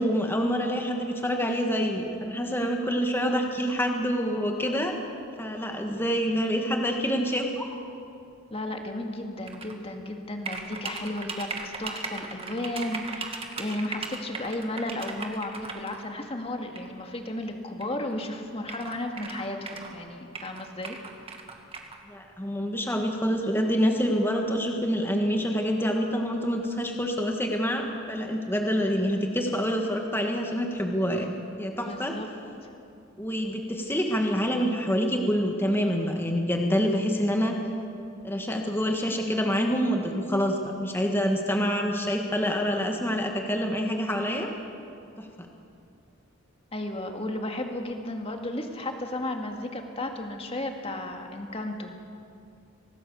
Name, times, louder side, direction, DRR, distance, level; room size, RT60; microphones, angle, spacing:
voice 1, 0.0-4.9 5.4-7.7 22.1-31.3 31.6-32.1 33.2-37.5 38.2-44.5 45.2-45.3, equal, 10° left, 2 dB, 1.7 m, -26 dB
voice 2, 8.5-21.0 31.8-32.3 32.6-32.7 46.7-51.9, left 1 dB, 30° left, 3 dB, 2.0 m, -34 dB
sound 1, 9.5-9.7 10.5-16.0 16.8-16.9 17.8-17.9 18.1-18.2 18.6-20.0 20.3-22.0, right 4 dB, 25° right, 1.8 m, -37 dB
25.0 x 18.0 x 7.0 m, 2.6 s
head